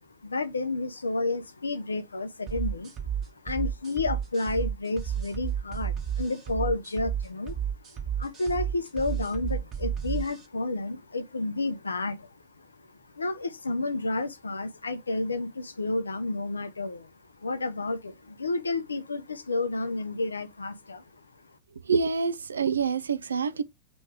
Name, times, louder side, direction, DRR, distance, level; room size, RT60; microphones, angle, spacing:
voice 1, 0.2-2.9 3.4-7.5 8.2-12.3 13.1-17.1 17.4-21.0, left 2 dB, 75° left, 0.6 m, -31 dB
sound 1, 2.5-10.5, right 8 dB, 30° right, 1.1 m, -32 dB
voice 2, 21.8-23.6, right 5 dB, 70° right, 0.4 m, -26 dB
3.2 x 3.1 x 4.6 m
figure-of-eight pair, 90°, 0 cm